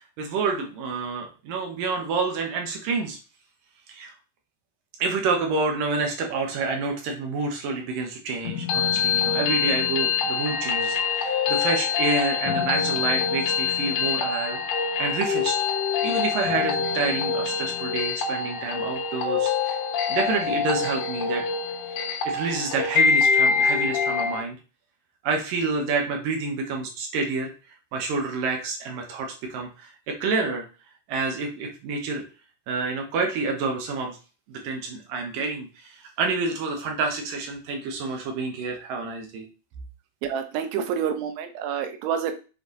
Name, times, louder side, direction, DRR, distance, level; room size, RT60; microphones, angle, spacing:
voice 1, 0.2-3.2 3.9-4.1 5.0-14.6 15.0-15.6 16.0-19.8 20.1-21.4 22.3-24.6 25.2-27.5 27.9-30.7 31.1-32.2 32.7-34.2 34.5-39.5, right 4 dB, 65° right, 2 dB, 2.4 m, -28 dB
sound 1, 8.5-24.4, left 6 dB, 65° left, 2.1 m, -25 dB
voice 2, 40.2-42.3, right 8 dB, 90° right, 7 dB, 3.4 m, -28 dB
7.5 x 4.5 x 4.0 m, 0.34 s
omnidirectional pair, 5.2 m